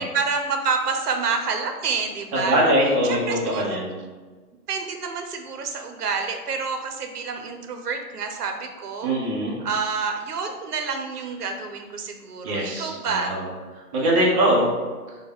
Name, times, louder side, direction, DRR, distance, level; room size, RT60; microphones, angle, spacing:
voice 1, 0.0-2.7 3.0-3.8 4.7-9.1 9.6-13.4, right 5 dB, 80° right, 5 dB, 0.7 m, -28 dB
voice 2, 2.3-3.9 9.0-9.6 12.4-13.5 13.9-14.7, right 1 dB, 20° right, -4 dB, 0.7 m, -22 dB
3.5 x 2.3 x 3.5 m, 1.4 s
hypercardioid pair, 140°, 46 cm